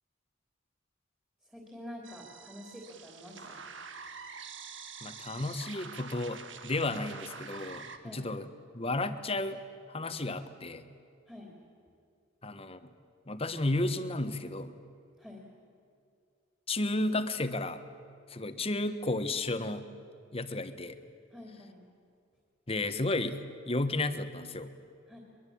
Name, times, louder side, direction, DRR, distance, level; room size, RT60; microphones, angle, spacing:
voice 1, 1.4-3.7 8.0-8.3 11.3-11.5 15.2-15.4 21.3-21.8 25.1-25.2, left 1 dB, 5° right, -1 dB, 3.1 m, -47 dB
sound 1, 2.0-8.0, right 5 dB, 70° right, 1.8 m, -46 dB
voice 2, 5.0-8.5 8.7-9.6 9.9-10.8 12.4-12.9 13.3-14.7 16.7-17.8 18.3-19.9 20.3-21.0 22.7-24.7, left 2 dB, 30° left, 10 dB, 1.3 m, -33 dB
23.0 x 22.5 x 8.6 m, 2.4 s
head